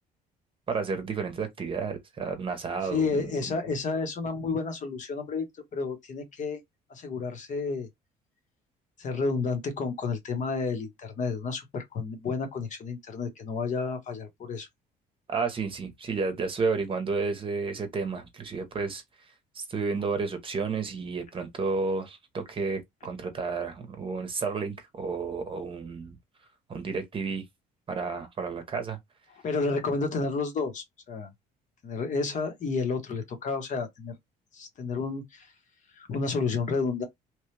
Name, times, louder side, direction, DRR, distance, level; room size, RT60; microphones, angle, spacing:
voice 1, 0.7-3.2 15.3-19.0 19.5-26.2 26.7-27.4 27.9-29.0, right 4 dB, 30° right, 0.9 m, -31 dB
voice 2, 2.9-5.5 5.7-6.6 6.9-7.9 9.0-14.7 29.4-31.3 31.8-34.2 34.5-35.5 36.0-37.1, left 4 dB, 45° left, 1.1 m, -31 dB
3.0 x 2.3 x 3.2 m
cardioid pair, 110°, 17 cm